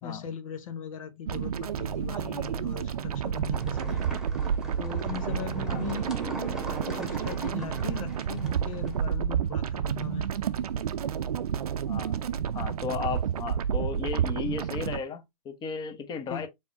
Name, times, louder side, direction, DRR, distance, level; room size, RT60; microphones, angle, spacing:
voice 1, 0.0-6.1 6.9-10.3 16.3-16.4, left 9 dB, 55° left, 0.9 m, -39 dB
sound 1, 1.3-15.0, right 8 dB, 70° right, 0.6 m, -30 dB
sound 2, 3.5-9.0, right 1 dB, 5° right, 1.4 m, -40 dB
voice 2, 11.9-12.2 12.5-16.5, left 5 dB, 20° left, 1.1 m, -35 dB
4.7 x 3.4 x 2.7 m
hypercardioid pair, 115°, 20 cm